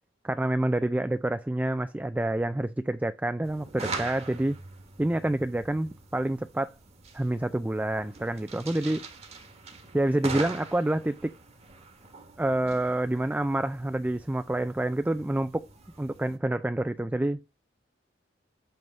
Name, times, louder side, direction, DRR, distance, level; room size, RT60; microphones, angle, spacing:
voice 1, 0.2-4.6 5.0-6.7 7.1-9.0 9.9-11.3 12.4-15.7 16.0-17.6, right 1 dB, 10° right, 0.3 m, -28 dB
sound 1, 3.4-16.4, right 3 dB, 35° right, 1.4 m, -42 dB
8.0 x 3.5 x 5.3 m
head